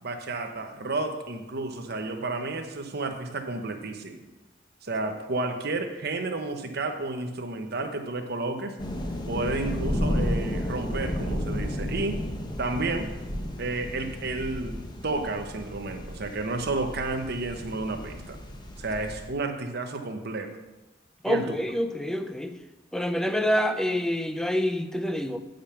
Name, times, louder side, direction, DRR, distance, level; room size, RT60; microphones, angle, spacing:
voice 1, 0.0-4.2 4.8-8.8 9.3-12.2 12.6-13.1 13.6-18.4 18.8-20.5 21.3-21.6, right 2 dB, 60° right, 1.0 m, -31 dB
sound 1, 8.8-19.3, left 1 dB, 25° left, 0.9 m, -32 dB
voice 2, 21.2-22.5 22.9-25.4, equal, 5° left, 0.5 m, -27 dB
8.9 x 5.2 x 5.8 m
head